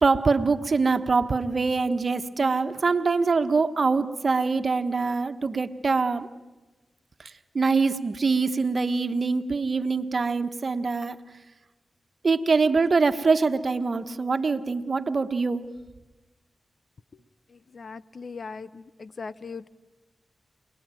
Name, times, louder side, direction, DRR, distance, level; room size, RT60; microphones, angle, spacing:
voice 1, 0.0-6.3 7.2-11.2 12.2-15.6, right 4 dB, 60° right, 10 dB, 1.4 m, -24 dB
voice 2, 17.5-19.7, left 4 dB, 65° left, 16 dB, 0.9 m, -39 dB
28.0 x 20.0 x 9.2 m, 1.1 s
cardioid pair, 40°, 0 cm